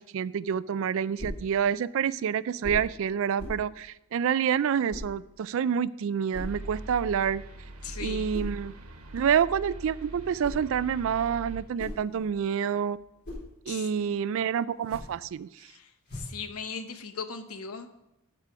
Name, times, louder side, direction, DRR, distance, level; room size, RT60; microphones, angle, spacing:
voice 1, 0.0-7.4 8.0-8.7 9.1-13.0 13.7-15.5, right 8 dB, 65° right, 19 dB, 0.3 m, -28 dB
sound 1, 1.2-1.5 2.6-2.9 3.4-3.7 4.9-5.1 6.3-6.6 8.3-8.6 10.1-10.7 11.5-12.5 12.9-13.5 14.7-15.2 16.0-16.4, left 1 dB, 50° left, 4.1 m, -40 dB
sound 2, 6.4-11.6, right 1 dB, 90° right, 1.3 m, -41 dB
voice 2, 7.8-8.3 13.7-14.2 15.6-17.9, left 5 dB, 80° left, 8 dB, 0.9 m, -39 dB
13.0 x 4.9 x 4.9 m, 0.87 s
head